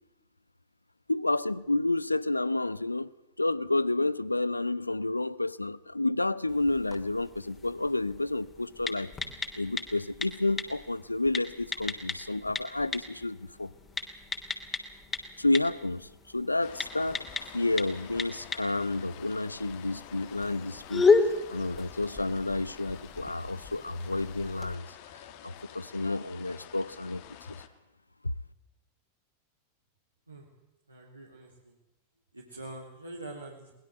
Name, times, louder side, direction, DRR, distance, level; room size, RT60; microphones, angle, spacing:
voice 1, 1.1-3.1 3.4-9.1 9.6-13.7 15.4-17.2 17.5-21.1 21.5-24.9 25.4-27.6 28.2-28.3, left 2 dB, 85° left, 19 dB, 0.8 m, -30 dB
sound 1, 6.5-24.8, left 4 dB, 15° left, 3.1 m, -34 dB
sound 2, 16.6-27.7, left 11 dB, 50° left, 2.3 m, -49 dB
voice 2, 30.9-31.7 32.3-33.7, right 2 dB, 85° right, -2 dB, 3.4 m, -44 dB
22.5 x 20.5 x 8.0 m, 0.95 s
figure-of-eight pair, 90°, 0 cm